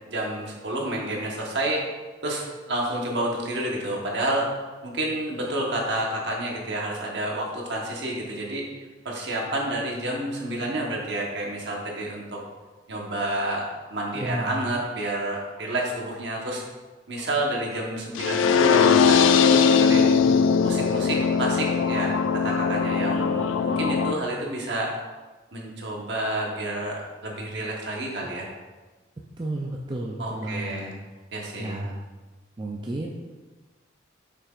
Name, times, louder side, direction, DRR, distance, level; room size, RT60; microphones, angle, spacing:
voice 1, 0.1-1.8 2.2-4.6 4.8-12.4 12.9-16.6 17.1-20.2 20.6-24.9 25.5-28.5 30.2-30.9 31.3-31.7, right 1 dB, 65° right, -2 dB, 1.2 m, -29 dB
voice 2, 14.1-14.6 29.4-30.9 31.6-32.0 32.6-33.1, right 1 dB, 25° right, -1 dB, 0.4 m, -32 dB
sound 1, 18.2-24.1, left 6 dB, 85° left, 0.3 m, -20 dB
6.6 x 5.9 x 2.5 m, 1.3 s
head